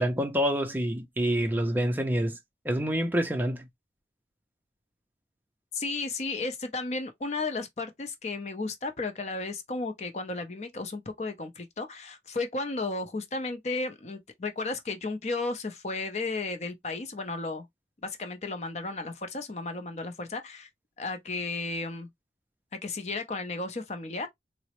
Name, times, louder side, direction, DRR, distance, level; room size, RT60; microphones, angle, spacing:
voice 1, 0.0-2.4 2.7-3.7, equal, 10° right, 0.4 m, -27 dB
voice 2, 5.7-17.7 18.0-20.7 21.0-22.1 22.7-24.3, left 3 dB, 40° left, 0.5 m, -34 dB
3.9 x 2.0 x 2.9 m
head